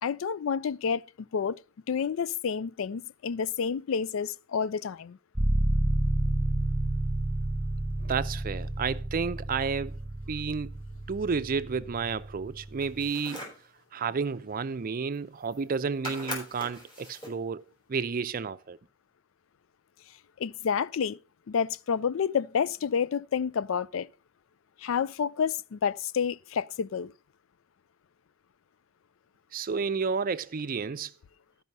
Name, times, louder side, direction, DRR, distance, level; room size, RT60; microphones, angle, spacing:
voice 1, 0.0-1.0 1.3-1.6 1.9-5.2 20.4-21.2 21.5-24.1 24.8-27.1, left 6 dB, 70° left, 0.4 m, -29 dB
sound 1, 5.3-13.1, right 1 dB, 10° right, 1.4 m, -30 dB
voice 2, 8.0-10.0 10.3-10.8 11.1-13.5 13.9-17.6 17.9-18.8 29.5-31.1, right 5 dB, 45° right, 0.5 m, -31 dB
sound 2, 12.8-13.6 15.1-15.2 15.4-15.8 16.0-17.4, equal, 25° left, 3.8 m, -40 dB
12.5 x 5.5 x 5.3 m
head